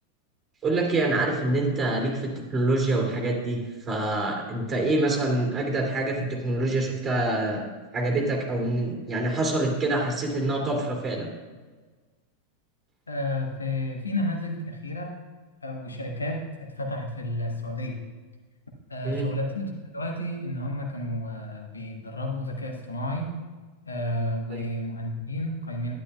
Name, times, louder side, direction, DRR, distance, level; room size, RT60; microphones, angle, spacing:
voice 1, 0.6-7.6 7.9-11.3 19.0-19.3 24.5-24.6, right 2 dB, 20° right, 0 dB, 2.5 m, -26 dB
voice 2, 13.1-15.1 15.6-18.0 18.9-23.3 23.9-25.9, left 1 dB, 75° left, 2 dB, 1.2 m, -31 dB
11.5 x 10.5 x 2.3 m, 1.3 s
figure-of-eight pair, 90°, 0 cm